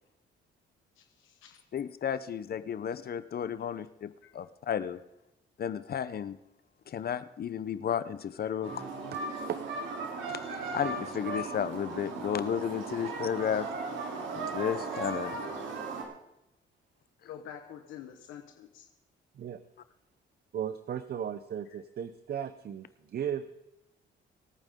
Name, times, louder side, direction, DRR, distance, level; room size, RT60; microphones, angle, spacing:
voice 1, 1.0-1.6 4.2-4.3 17.2-18.9, left 9 dB, 90° left, 4 dB, 1.3 m, -47 dB
voice 2, 1.7-5.0 5.6-6.4 6.9-8.7 10.3-10.4 10.7-13.7 14.3-15.4, left 8 dB, 50° left, 14 dB, 0.8 m, -33 dB
sound 1, 8.6-16.0, right 3 dB, 75° right, 3.4 m, -37 dB
voice 3, 20.5-23.4, right 9 dB, 55° right, 12 dB, 0.8 m, -35 dB
26.0 x 9.0 x 3.8 m, 0.91 s
cardioid pair, 90°, 20 cm